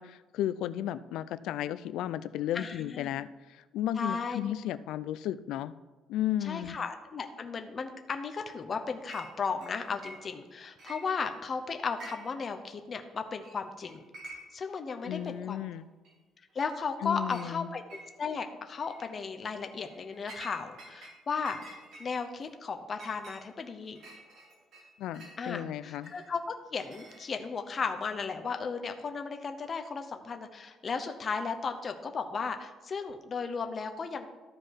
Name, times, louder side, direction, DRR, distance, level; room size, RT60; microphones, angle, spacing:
voice 1, 0.0-5.7 6.1-6.8 15.0-15.9 17.0-17.7 25.0-26.1, left 12 dB, 70° left, 15 dB, 0.3 m, -34 dB
voice 2, 2.5-3.1 4.0-4.4 6.4-14.0 14.5-15.6 16.5-21.6 22.0-24.0 25.4-34.3, left 5 dB, 25° left, 6 dB, 0.7 m, -35 dB
Chink clink, 9.1-9.3 9.6-10.5 10.8-11.5 11.9-12.5 12.7-12.8 13.4-13.6 13.8-14.6 15.1-15.2 16.0-16.1 16.6-16.9 17.3-17.5 17.9-18.4 18.8-19.1 19.6-21.1 21.4-25.4 26.0-27.5, right 1 dB, 55° right, 2.5 m, -49 dB
13.5 x 4.7 x 4.6 m, 1.2 s
cardioid pair, 170°, 0 cm